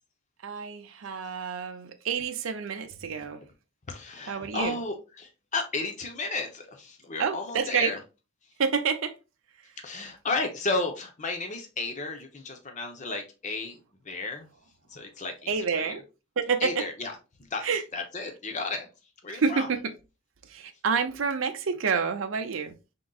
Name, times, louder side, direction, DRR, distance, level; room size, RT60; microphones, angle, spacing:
voice 1, 0.4-3.4 4.3-4.8 7.2-7.9 8.6-9.1 15.5-16.0 16.4-16.9 17.6-17.8 19.3-19.8 20.5-22.7, right 5 dB, 75° right, 0.6 m, -28 dB
voice 2, 3.9-8.0 9.8-13.8 14.1-14.5 14.9-16.0 16.6-17.1 17.4-17.6 17.9-18.9 19.2-19.7, left 3 dB, 35° left, 0.8 m, -33 dB
5.2 x 3.8 x 2.3 m
head